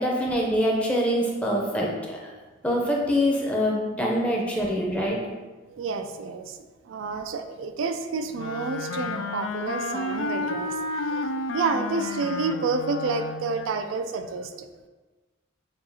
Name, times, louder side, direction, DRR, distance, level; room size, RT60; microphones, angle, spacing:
voice 1, 0.0-2.3 2.6-5.2, equal, 5° left, -2 dB, 0.7 m, -24 dB
voice 2, 5.7-6.6 6.9-14.7, right 4 dB, 75° right, 8 dB, 0.3 m, -29 dB
Wind instrument woodwind instrument, 8.4-13.7, left 3 dB, 65° left, 0.3 m, -31 dB
7.0 x 2.4 x 2.8 m, 1.3 s
head